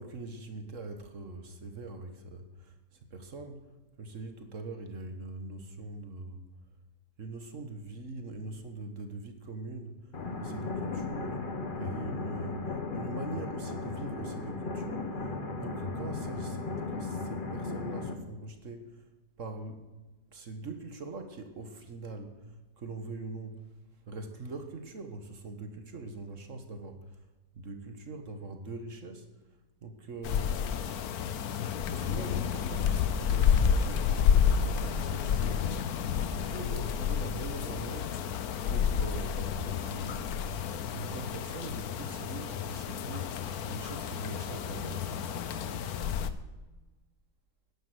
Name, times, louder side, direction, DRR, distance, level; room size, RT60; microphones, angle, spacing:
voice 1, 0.0-2.7 3.1-3.6 4.0-6.4 7.2-10.0 10.4-11.4 11.8-15.1 15.6-19.0 19.4-19.8 20.3-22.4 22.8-23.6 24.1-27.0 27.5-29.2 29.8-30.6 31.9-35.7 36.2-38.2 38.7-40.3 40.9-45.1, right 3 dB, 50° right, 7 dB, 1.6 m, -42 dB
sound 1, 10.1-18.1, left 3 dB, 35° left, 1.1 m, -36 dB
sound 2, 30.2-46.3, left 7 dB, 65° left, 1.2 m, -30 dB
11.5 x 10.5 x 7.9 m, 1.1 s
omnidirectional pair, 1.8 m